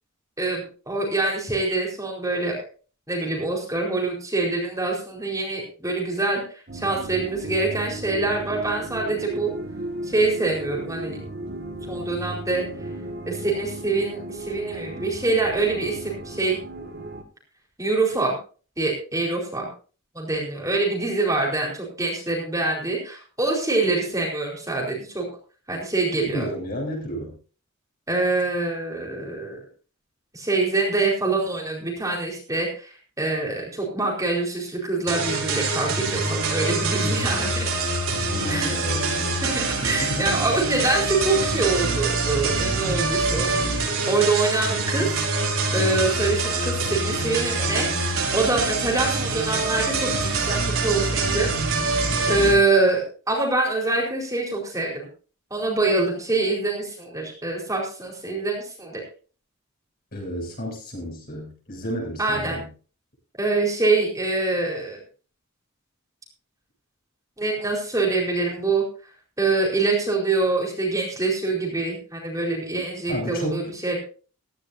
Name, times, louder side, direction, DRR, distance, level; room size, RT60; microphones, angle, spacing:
voice 1, 0.4-2.6 3.1-9.5 10.0-11.2 11.9-12.6 13.3-16.6 17.8-18.3 18.8-19.7 20.1-25.3 25.7-26.5 28.1-29.6 30.3-37.7 38.5-38.7 39.4-45.1 45.4-51.5 51.9-55.1 55.5-59.0 62.2-62.6 63.4-65.0 67.4-68.8 69.4-74.0, right 3 dB, 15° right, -2 dB, 4.5 m, -25 dB
sound 1, 6.7-17.2, right 1 dB, 45° right, 1.7 m, -35 dB
voice 2, 26.1-27.3 38.2-39.4 39.8-40.5 60.1-62.7 73.1-73.7, equal, 45° left, 0 dB, 7.8 m, -31 dB
sound 2, 35.1-52.5, right 3 dB, 70° right, 5.6 m, -25 dB
16.5 x 15.5 x 2.7 m, 0.38 s
head